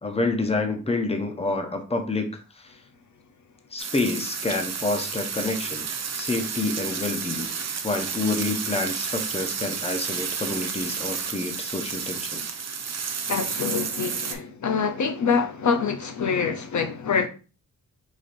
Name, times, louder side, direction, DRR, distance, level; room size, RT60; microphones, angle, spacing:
voice 1, 0.0-2.7 3.7-5.9 6.1-7.5 7.8-12.4, left 3 dB, 20° left, 0.6 m, -28 dB
sound 1, 3.8-14.3, right 6 dB, 50° right, 0.6 m, -31 dB
voice 2, 13.3-17.3, left 5 dB, 60° left, 0.6 m, -25 dB
4.9 x 4.3 x 2.5 m
wide cardioid pair, 155°, 34 cm